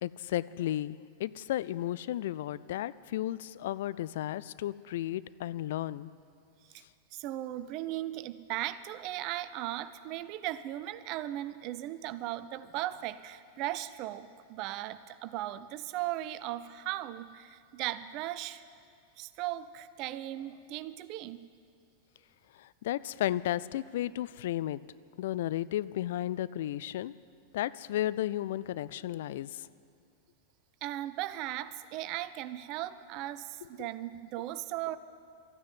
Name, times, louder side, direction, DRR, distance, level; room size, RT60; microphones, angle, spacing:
voice 1, 0.0-6.1 22.6-24.8 25.2-27.1 27.5-29.6, left 13 dB, 55° left, 18 dB, 0.3 m, -33 dB
voice 2, 7.1-18.6 19.2-21.5 30.8-35.0, right 14 dB, 40° right, 14 dB, 0.5 m, -37 dB
13.0 x 9.5 x 9.4 m, 2.3 s
figure-of-eight pair, 90°, 0 cm